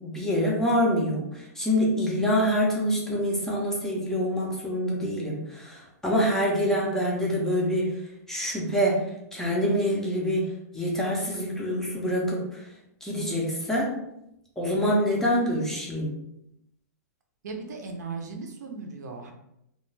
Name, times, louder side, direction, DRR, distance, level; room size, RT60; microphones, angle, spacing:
voice 1, 0.0-7.9 8.3-9.0 9.3-12.6 13.0-13.9 14.6-16.1, equal, 5° left, -4 dB, 0.4 m, -26 dB
voice 2, 17.4-19.3, right 4 dB, 75° right, 3 dB, 0.6 m, -37 dB
2.3 x 2.2 x 3.1 m, 0.82 s
hypercardioid pair, 155°, 10 cm